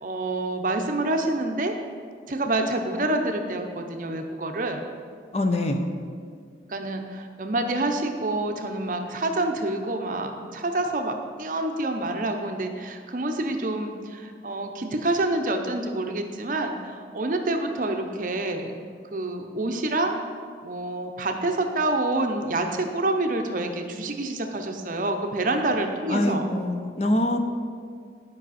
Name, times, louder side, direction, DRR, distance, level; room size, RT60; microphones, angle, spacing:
voice 1, 0.0-1.7 2.3-4.9 6.7-18.7 19.1-20.2 20.6-26.5, right 2 dB, 50° right, 5 dB, 0.6 m, -27 dB
voice 2, 5.3-5.9 26.1-27.4, left 1 dB, 35° left, 5 dB, 0.5 m, -24 dB
11.0 x 5.4 x 4.2 m, 2.2 s
head